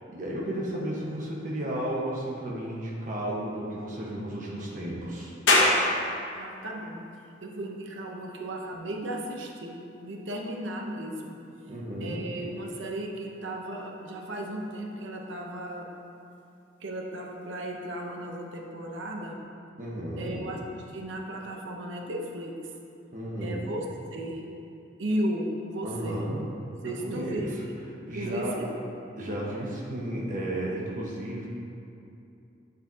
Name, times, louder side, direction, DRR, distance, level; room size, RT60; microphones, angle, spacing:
voice 1, 0.0-5.3 11.7-12.2 19.8-20.4 23.1-23.8 25.8-26.5 26.8-27.6 28.1-28.6 29.2-31.5, right 1 dB, 40° right, -4 dB, 1.3 m, -33 dB
sound 1, 5.5-18.6, left 2 dB, 80° left, 1.2 m, -33 dB
voice 2, 6.3-7.0 7.4-11.4 12.0-15.9 16.8-19.4 20.2-20.6 20.9-22.6 23.4-23.8 24.1-24.4 25.0-26.3 26.8-27.7 28.1-28.7, right 1 dB, 85° right, 0 dB, 0.9 m, -35 dB
8.4 x 7.5 x 2.8 m, 2.6 s
head